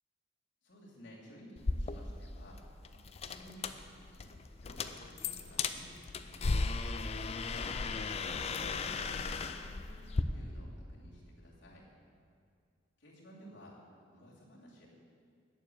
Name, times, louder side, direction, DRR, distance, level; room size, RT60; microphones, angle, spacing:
voice 1, 0.6-2.6 2.9-4.3 4.6-6.7 7.2-11.9 13.0-13.7 14.1-14.9, equal, 70° left, -6 dB, 2.5 m, -55 dB
sound 1, 1.6-10.2, left 4 dB, 35° left, 0.4 m, -36 dB
9.2 x 6.9 x 7.6 m, 2.3 s
head